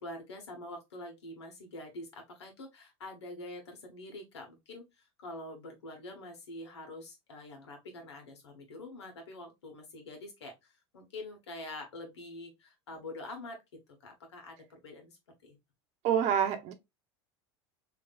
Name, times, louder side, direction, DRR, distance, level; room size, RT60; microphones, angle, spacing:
voice 1, 0.0-15.6, left 2 dB, 85° left, 1.4 m, -46 dB
voice 2, 16.0-16.7, right 8 dB, 50° right, 0.8 m, -27 dB
3.5 x 3.0 x 2.4 m
hypercardioid pair, 90°, 14 cm